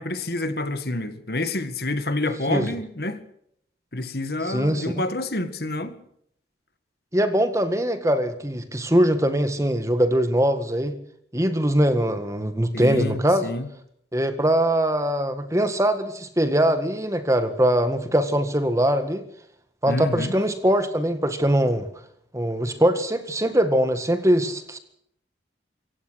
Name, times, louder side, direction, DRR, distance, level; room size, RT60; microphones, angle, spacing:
voice 1, 0.0-3.2 3.9-6.0 12.7-13.7 19.9-20.3, left 2 dB, 55° left, 1.9 m, -28 dB
voice 2, 4.4-5.0 7.1-10.9 11.3-13.5 14.1-19.2 19.8-21.9 22.3-24.8, right 1 dB, 15° right, 1.8 m, -22 dB
25.5 x 16.0 x 6.5 m
head